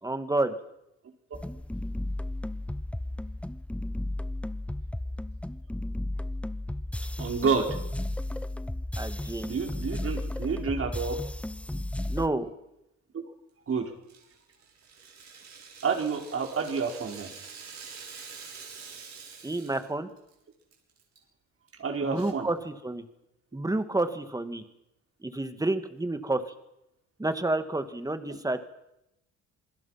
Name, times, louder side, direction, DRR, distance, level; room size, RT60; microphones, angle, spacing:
voice 1, 0.0-0.5 9.0-9.5 12.1-12.5 19.4-20.1 22.0-23.0 23.5-24.6 25.2-26.4 27.2-28.6, right 2 dB, 10° right, 9 dB, 2.1 m, -29 dB
sound 1, 1.3-12.3, left 1 dB, 5° left, 0.9 m, -34 dB
voice 2, 7.2-7.8 9.4-11.2 13.1-13.2 13.7-13.9 15.8-17.3 21.8-22.5, right 5 dB, 50° right, 3 dB, 4.9 m, -29 dB
Rattle (instrument), 14.1-19.9 20.2-20.3 20.7-21.2, right 5 dB, 65° right, 6.9 m, -46 dB
27.5 x 21.0 x 5.9 m, 0.85 s
cardioid pair, 90°, 30 cm